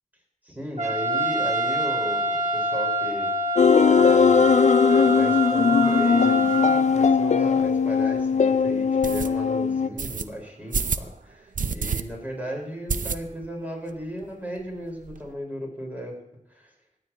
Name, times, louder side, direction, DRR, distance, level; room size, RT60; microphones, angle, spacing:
voice 1, 0.4-3.3 3.8-4.5 4.9-16.1 16.5-16.7, equal, 15° right, -1 dB, 4.6 m, -35 dB
Trumpet, 0.8-6.8, right 1 dB, 60° right, 1.6 m, -26 dB
sound 1, 3.6-9.9, left 5 dB, 65° left, 0.4 m, -19 dB
sound 2, 7.6-7.7 8.2-8.3 9.0-9.3 10.0-10.2 10.7-11.1 11.5-12.0 12.3-12.4 12.9-13.5 13.9-14.0 14.2-14.3 14.6-15.2, right 5 dB, 90° right, 0.6 m, -28 dB
25.0 x 9.0 x 2.9 m, 0.83 s
wide cardioid pair, 75°, 13 cm